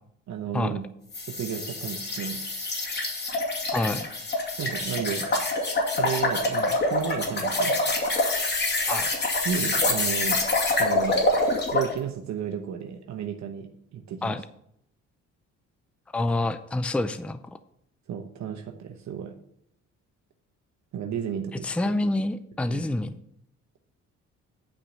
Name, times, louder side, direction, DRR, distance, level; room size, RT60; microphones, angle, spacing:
voice 1, 0.3-0.8 1.3-2.4 4.6-5.3 6.0-7.7 9.4-10.4 10.7-11.2 11.7-14.3 18.1-19.3 20.9-21.9 22.7-22.8, right 8 dB, 65° right, 5 dB, 1.0 m, -33 dB
sound 1, 1.1-11.9, left 2 dB, 35° left, 2.6 m, -26 dB
voice 2, 3.7-4.1 8.9-9.1 14.2-14.4 16.1-17.6 21.6-23.2, left 2 dB, 5° left, 11 dB, 0.5 m, -27 dB
9.0 x 5.1 x 7.5 m, 0.73 s
cardioid pair, 90°, 30 cm